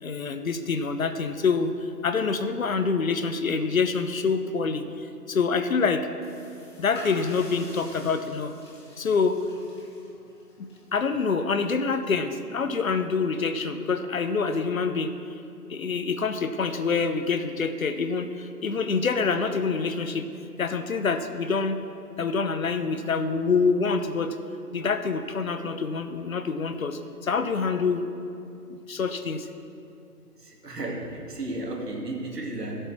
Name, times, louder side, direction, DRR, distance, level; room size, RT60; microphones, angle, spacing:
voice 1, 0.0-1.7 2.0-6.1 6.8-8.5 9.0-9.4 10.6-15.1 15.7-20.2 20.6-21.8 22.2-24.4 24.7-28.1 28.7-29.5, left 5 dB, 55° left, 9 dB, 0.8 m, -26 dB
sound 1, 6.2-12.9, left 2 dB, 15° left, 1.1 m, -48 dB
voice 2, 30.4-32.9, right 2 dB, 75° right, 0 dB, 2.2 m, -34 dB
13.0 x 7.9 x 4.5 m, 2.6 s
figure-of-eight pair, 150°, 48 cm